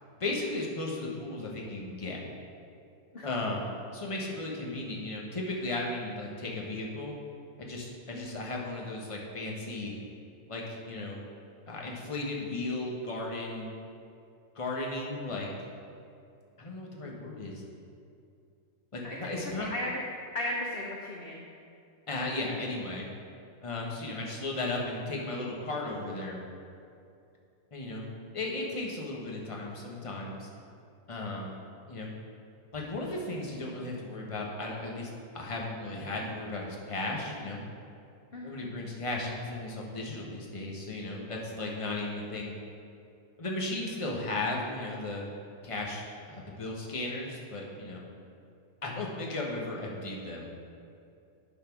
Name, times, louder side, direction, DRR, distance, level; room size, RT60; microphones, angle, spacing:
voice 1, 0.2-2.2 3.2-3.7 3.9-7.1 7.6-9.9 10.5-11.2 11.7-13.7 14.5-15.5 16.6-17.5 18.9-19.7 22.1-23.0 23.6-26.4 27.7-28.1 28.3-30.5 31.1-31.5 31.9-32.1 32.7-37.6 38.4-42.6 43.4-45.3 45.6-48.0 48.8-50.5, left 2 dB, 25° left, -2 dB, 1.0 m, -35 dB
voice 2, 8.1-8.4 19.0-19.2 19.6-20.0 20.3-21.4 38.3-38.7, left 1 dB, 50° left, -2 dB, 0.8 m, -36 dB
10.0 x 4.2 x 5.9 m, 2.5 s
omnidirectional pair, 1.7 m